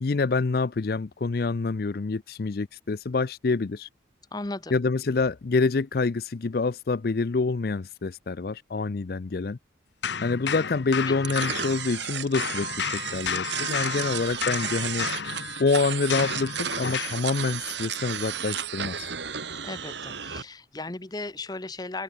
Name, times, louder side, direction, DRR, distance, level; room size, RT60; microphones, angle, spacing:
voice 1, 0.0-3.9 4.7-9.6 10.2-15.1 15.6-19.1, left 4 dB, 55° left, 0.5 m, -27 dB
voice 2, 4.3-4.8 11.1-11.2 19.6-22.0, left 2 dB, 20° left, 0.8 m, -36 dB
sound 1, 10.0-12.1 12.3-17.3, left 6 dB, 70° left, 1.1 m, -32 dB
sound 2, 11.2-20.4, right 8 dB, 75° right, 2.9 m, -33 dB
head